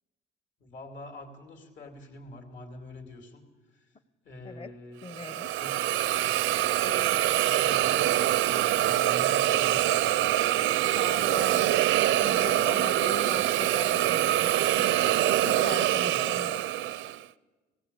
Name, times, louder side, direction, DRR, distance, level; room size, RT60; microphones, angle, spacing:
voice 1, 0.6-3.9 4.2-5.0 5.5-5.8 6.8-10.3 16.1-16.4, left 1 dB, 65° left, 3 dB, 2.8 m, -45 dB
voice 2, 5.0-5.5 10.7-11.7 12.2-16.6, left 4 dB, 30° left, 14 dB, 0.8 m, -40 dB
Hiss, 5.1-17.2, right 13 dB, 75° right, 0.5 m, -25 dB
19.0 x 16.5 x 8.5 m, 1.3 s
cardioid pair, 110°, 20 cm